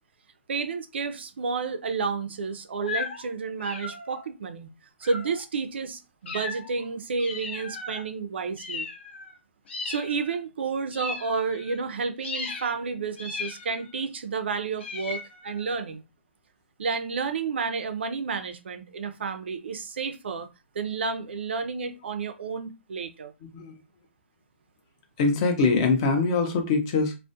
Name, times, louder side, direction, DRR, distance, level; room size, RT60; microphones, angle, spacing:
voice 1, 0.5-4.7 5.0-8.9 9.8-16.0 16.8-20.5 20.7-23.3, right 5 dB, 60° right, 0.4 m, -31 dB
sound 1, 2.8-3.3 3.6-4.3 5.0-5.4 6.3-6.8 7.2-8.0 8.6-9.4 9.7-10.4 10.9-11.8 12.2-12.8 13.2-14.0 14.8-15.7, left 4 dB, 60° left, 0.7 m, -36 dB
voice 2, 25.2-27.1, left 4 dB, 25° left, 0.5 m, -23 dB
2.3 x 2.1 x 2.6 m
hypercardioid pair, 165°, 7 cm